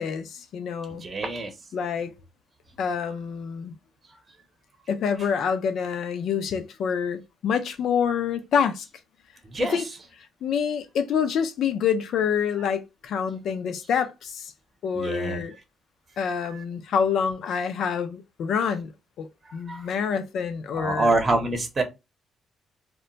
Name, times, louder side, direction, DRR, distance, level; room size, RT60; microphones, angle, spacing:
voice 1, 0.0-1.0 1.7-2.1 2.8-3.7 4.9-8.9 9.6-9.9 10.4-14.5 14.8-15.6 16.2-18.9 19.2-21.1, left 7 dB, 70° left, 0.5 m, -27 dB
voice 2, 1.0-1.5 9.4-9.8 14.9-15.4 16.4-16.6 19.5-19.9 20.7-21.8, right 2 dB, 30° right, 0.8 m, -26 dB
2.2 x 2.2 x 3.8 m
cardioid pair, 90°, 0 cm